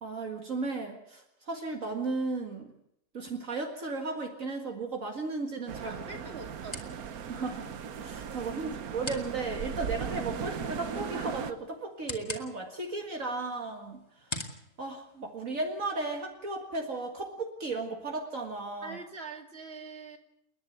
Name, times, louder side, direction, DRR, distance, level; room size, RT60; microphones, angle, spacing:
voice 1, 0.0-2.7 3.1-6.0 7.3-7.7 8.0-14.0 14.3-14.5 14.8-19.0, right 3 dB, 65° right, 2 dB, 2.3 m, -35 dB
sound 1, 4.9-15.9, left 1 dB, 20° left, 2.2 m, -46 dB
sound 2, 5.7-11.5, right 7 dB, 80° right, 1.5 m, -37 dB
voice 2, 5.8-7.0 8.3-8.9 18.8-20.2, right 4 dB, 45° right, 3 dB, 2.8 m, -44 dB
29.5 x 10.5 x 9.2 m, 0.78 s
omnidirectional pair, 1.5 m